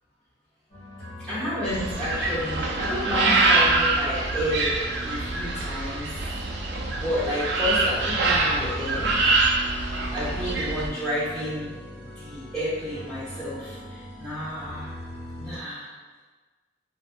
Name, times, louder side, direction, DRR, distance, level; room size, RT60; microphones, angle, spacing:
sound 1, 0.7-15.6, equal, 50° left, 1.2 m, -40 dB
voice 1, 1.2-6.1 6.9-9.1 10.1-14.9 15.4-15.9, equal, ahead, -16 dB, 1.2 m, -31 dB
sound 2, 1.6-10.9, right 3 dB, 70° right, 0.3 m, -25 dB
2.6 x 2.2 x 2.2 m, 1.4 s
head